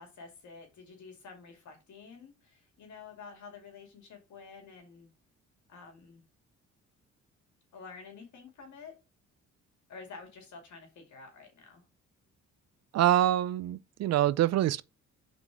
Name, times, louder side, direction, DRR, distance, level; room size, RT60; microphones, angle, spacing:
voice 1, 0.0-5.1 5.7-6.2 7.7-9.0 9.9-11.8, left 5 dB, 70° left, 2.5 m, -49 dB
voice 2, 12.9-14.8, right 12 dB, 60° right, 0.4 m, -25 dB
5.1 x 4.0 x 4.7 m
cardioid pair, 90°, 30 cm